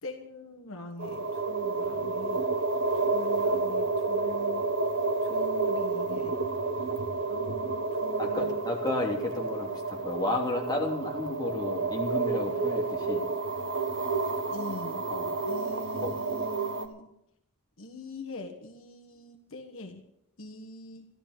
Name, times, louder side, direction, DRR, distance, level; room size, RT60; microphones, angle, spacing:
voice 1, 0.0-2.4 2.9-4.6 5.2-6.3 7.3-8.6 14.5-15.0 15.5-17.1 17.8-20.0 20.4-21.1, left 2 dB, 65° left, 2 dB, 1.4 m, -43 dB
sound 1, 1.0-16.9, right 3 dB, 55° right, 1.5 m, -30 dB
voice 2, 8.2-13.2 15.1-15.3 16.0-16.1, left 2 dB, 20° left, -1 dB, 2.9 m, -32 dB
13.5 x 13.0 x 6.7 m, 0.77 s
head